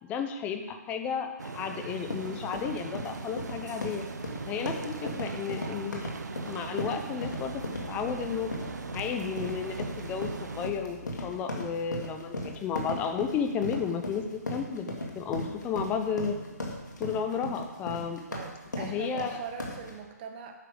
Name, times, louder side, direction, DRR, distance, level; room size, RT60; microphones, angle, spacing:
voice 1, 0.0-4.0 4.5-6.1 6.5-8.5 8.9-16.4 17.0-18.2 18.8-19.4, left 6 dB, 15° left, 7 dB, 0.7 m, -33 dB
sound 1, 1.4-10.7, right 4 dB, 75° right, 0.8 m, -40 dB
sound 2, 1.9-19.9, left 1 dB, 85° left, 2.1 m, -37 dB
sound 3, 7.2-11.4, left 5 dB, 40° left, 2.9 m, -49 dB
voice 2, 18.3-20.5, right 7 dB, 35° right, 5 dB, 1.1 m, -42 dB
9.2 x 6.6 x 5.1 m, 1.2 s
hypercardioid pair, 150°, 9 cm